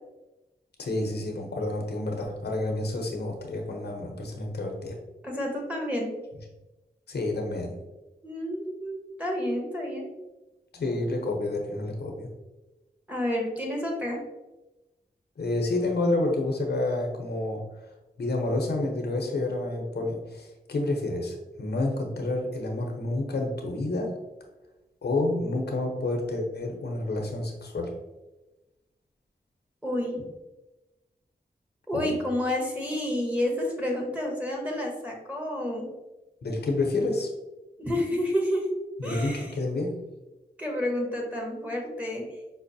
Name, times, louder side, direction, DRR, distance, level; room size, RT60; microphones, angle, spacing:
voice 1, 0.8-5.0 7.1-7.8 10.7-12.3 15.4-17.6 18.2-24.2 25.0-27.9 31.9-32.2 36.4-37.3 39.0-40.0, left 2 dB, 80° left, 2 dB, 0.6 m, -29 dB
voice 2, 5.2-6.1 8.2-10.1 13.1-14.2 29.8-30.3 31.9-35.9 37.8-38.6 39.0-39.5 40.6-42.2, left 1 dB, 10° right, -1 dB, 1.0 m, -29 dB
5.2 x 2.0 x 2.6 m, 1.0 s
wide cardioid pair, 60°, 17 cm